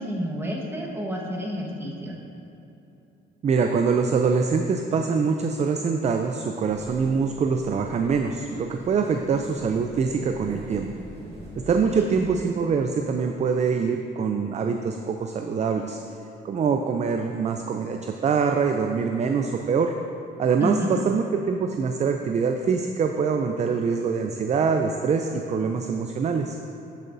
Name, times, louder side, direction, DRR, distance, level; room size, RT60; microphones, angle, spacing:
voice 1, 0.0-2.2 11.9-12.0 20.6-21.0, equal, 10° right, -3 dB, 1.4 m, -30 dB
voice 2, 3.4-10.9 11.6-16.0 16.4-19.9 20.4-26.6, right 5 dB, 35° right, 5 dB, 0.4 m, -24 dB
sound 1, 6.6-12.4, right 1 dB, 60° right, 1.8 m, -43 dB
12.0 x 6.1 x 2.6 m, 2.9 s
cardioid pair, 90°, 20 cm